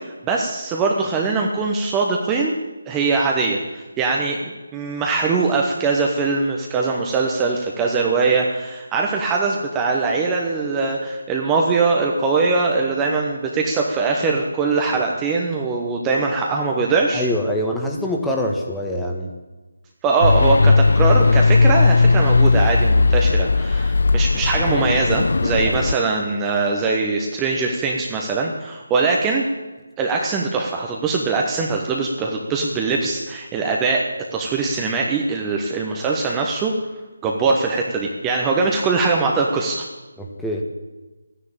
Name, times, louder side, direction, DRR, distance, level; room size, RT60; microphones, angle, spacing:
voice 1, 0.1-2.6 2.9-17.2 20.0-29.5 30.0-34.1 34.3-36.7 37.2-39.9, right 4 dB, 15° right, 0 dB, 1.1 m, -21 dB
voice 2, 17.1-19.3 25.6-25.7 40.2-40.6, left 1 dB, 5° left, 0 dB, 1.4 m, -24 dB
sound 1, 20.2-25.9, left 3 dB, 60° left, 0.4 m, -16 dB
13.0 x 10.0 x 8.8 m, 1.2 s
figure-of-eight pair, 155°, 0 cm